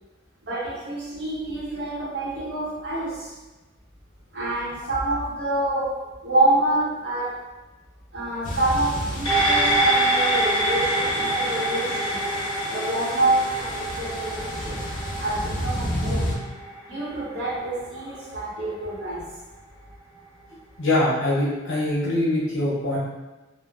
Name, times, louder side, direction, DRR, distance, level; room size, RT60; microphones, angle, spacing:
voice 1, 0.4-3.3 4.3-7.5 8.1-12.3 12.7-14.9 15.2-16.4 16.9-19.3, right 2 dB, 55° right, -7 dB, 0.8 m, -27 dB
sound 1, 8.4-16.4, equal, 40° left, 0.4 m, -32 dB
sound 2, 9.3-17.9 18.3-18.4, right 1 dB, 20° left, 0.9 m, -26 dB
voice 2, 20.8-23.0, left 1 dB, 65° left, -6 dB, 0.8 m, -23 dB
3.0 x 2.0 x 2.4 m, 1.1 s
head